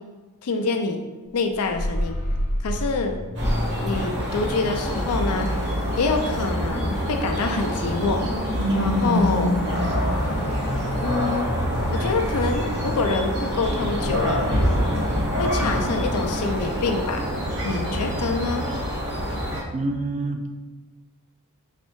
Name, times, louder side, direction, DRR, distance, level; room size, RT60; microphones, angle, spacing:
voice 1, 0.4-1.0 1.3-2.2 2.6-3.2 3.8-5.5 6.0-8.2 8.7-9.6 11.0-11.5 11.9-14.5 15.4-17.3 17.6-18.7, left 3 dB, 85° left, 4 dB, 0.5 m, -26 dB
sound 1, 1.5-15.0, left 1 dB, 45° left, 0.7 m, -29 dB
sound 2, 3.3-19.6, equal, 50° right, 1.0 m, -26 dB
voice 2, 19.7-20.5, right 2 dB, 30° right, 5 dB, 0.4 m, -27 dB
4.1 x 3.2 x 3.1 m, 1.2 s
head